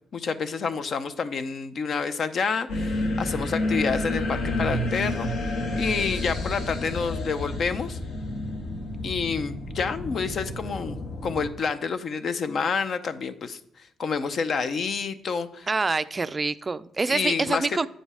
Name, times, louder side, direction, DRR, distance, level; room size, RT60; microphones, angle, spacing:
voice 1, 0.1-5.3 5.8-8.0 9.0-15.7 17.1-17.8, left 5 dB, 55° left, 11 dB, 0.7 m, -28 dB
sound 1, 2.7-11.5, left 1 dB, 75° left, 1.6 m, -30 dB
voice 2, 15.7-17.9, right 3 dB, 25° right, 14 dB, 0.4 m, -26 dB
8.7 x 5.2 x 4.9 m, 0.72 s
cardioid pair, 90°, 0 cm